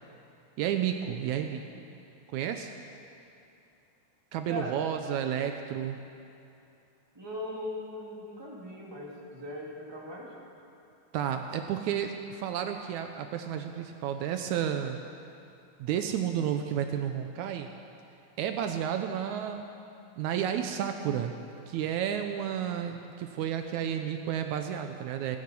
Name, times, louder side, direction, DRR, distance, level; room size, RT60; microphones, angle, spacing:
voice 1, 0.6-1.6 2.3-2.7 4.3-6.0 11.1-15.0 15.8-17.7 18.4-19.6 20.2-21.3 21.7-25.4, right 9 dB, 80° right, 6 dB, 2.0 m, -31 dB
voice 2, 7.1-10.3, left 1 dB, 10° right, -4 dB, 2.3 m, -39 dB
28.0 x 9.6 x 5.4 m, 2.7 s
omnidirectional pair, 3.5 m